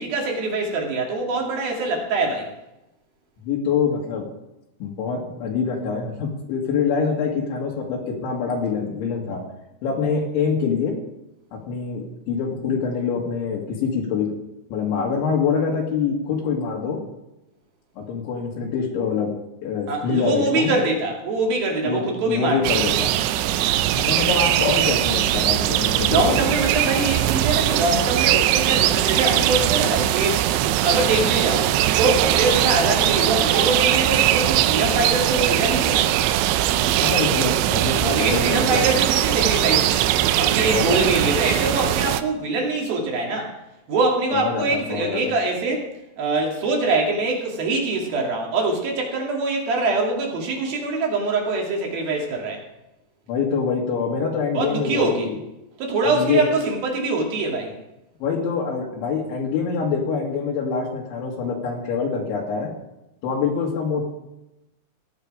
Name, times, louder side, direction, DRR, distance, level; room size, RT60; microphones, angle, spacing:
voice 1, 0.0-2.5 19.9-22.9 26.1-30.4 30.8-31.7 32.0-36.1 38.0-40.1 40.4-43.5 43.9-45.9 46.2-52.6 54.5-55.3 55.8-57.7, right 2 dB, 55° right, 0 dB, 4.0 m, -23 dB
voice 2, 3.4-4.3 4.8-9.4 9.8-10.9 11.5-14.3 14.7-17.0 18.0-19.3 19.6-20.7 21.8-23.1 24.0-26.5 37.0-38.9 40.5-41.1 44.3-45.3 53.3-55.4 56.0-56.5 58.2-62.7 63.2-64.0, left 5 dB, 80° left, -2 dB, 4.3 m, -25 dB
sound 1, 22.6-42.2, right 13 dB, 80° right, 2.8 m, -20 dB
16.5 x 10.5 x 5.0 m, 0.91 s
omnidirectional pair, 5.4 m